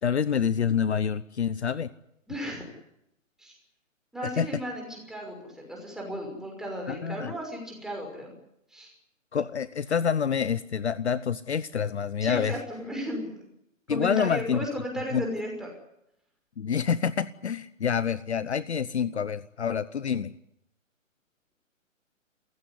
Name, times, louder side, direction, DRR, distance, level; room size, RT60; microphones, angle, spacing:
voice 1, 0.0-1.9 4.2-4.5 6.9-7.3 9.3-12.6 13.9-14.7 15.1-15.2 16.6-20.3, left 7 dB, 55° left, 16 dB, 1.0 m, -27 dB
voice 2, 2.3-2.6 3.4-3.5 4.1-8.3 8.7-8.9 12.2-13.4 13.9-15.7, equal, ahead, 0 dB, 6.0 m, -35 dB
28.5 x 16.0 x 9.9 m, 0.80 s
figure-of-eight pair, 135°, 40 cm